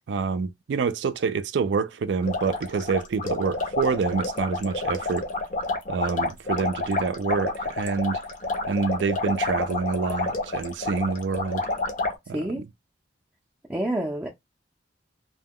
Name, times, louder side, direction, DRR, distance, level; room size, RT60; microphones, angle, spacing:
voice 1, 0.1-5.2 5.9-8.2 8.7-11.7 12.3-12.4, right 5 dB, 65° right, 0.3 m, -27 dB
sound 1, 2.2-12.1, left 2 dB, 45° left, 0.6 m, -29 dB
voice 2, 12.3-12.6 13.7-14.3, right 1 dB, 10° right, 0.5 m, -28 dB
2.2 x 2.2 x 3.5 m
head